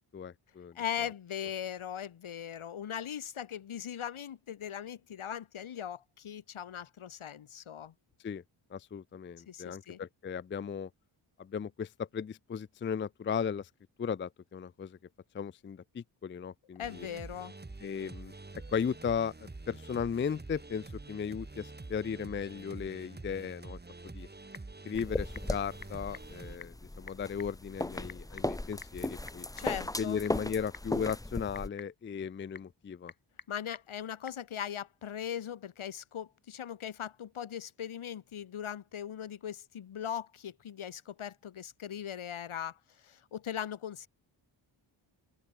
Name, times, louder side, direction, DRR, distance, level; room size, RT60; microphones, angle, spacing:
voice 1, 0.0-0.8 8.2-8.4 8.7-10.9 11.4-13.7 14.0-15.0 15.3-17.1 17.8-23.8 24.1-24.3 24.8-29.5 30.0-33.1, left 7 dB, 25° left, 0.4 m, -36 dB
voice 2, 0.7-7.9 9.5-10.0 16.8-17.5 29.6-30.2 33.5-42.8 43.0-44.1, left 9 dB, 75° left, 2.9 m, -39 dB
sound 1, 16.8-26.6, right 3 dB, 20° right, 2.3 m, -47 dB
Typing / Telephone, 24.0-34.5, left 5 dB, 45° left, 5.1 m, -54 dB
sound 2, 25.0-31.7, left 1 dB, 5° left, 0.9 m, -37 dB
open air
cardioid pair, 80°, 49 cm